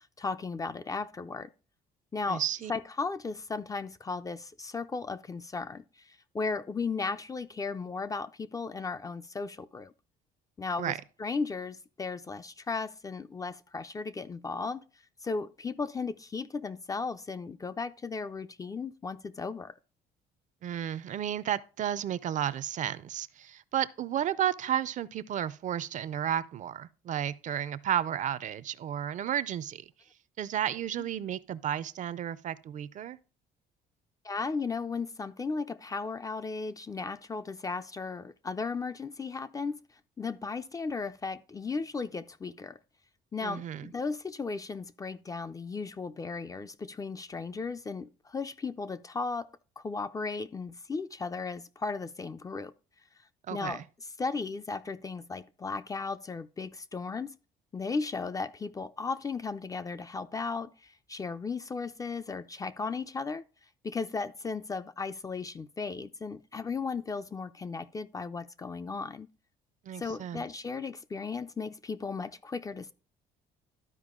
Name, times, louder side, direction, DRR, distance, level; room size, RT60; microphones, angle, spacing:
voice 1, 0.0-1.5 2.1-2.4 2.7-9.9 10.6-14.8 15.2-19.7 34.2-39.8 40.2-42.8 43.3-49.5 49.8-52.7 53.5-53.8 54.2-57.3 57.7-63.4 63.8-69.3 70.0-72.9, left 4 dB, 20° left, 0.4 m, -35 dB
voice 2, 2.3-2.7 10.8-11.0 20.6-29.8 30.4-33.2 43.4-43.9 53.5-53.8 69.9-70.4, right 10 dB, 45° right, 0.5 m, -32 dB
12.0 x 4.7 x 3.6 m
cardioid pair, 110°, 17 cm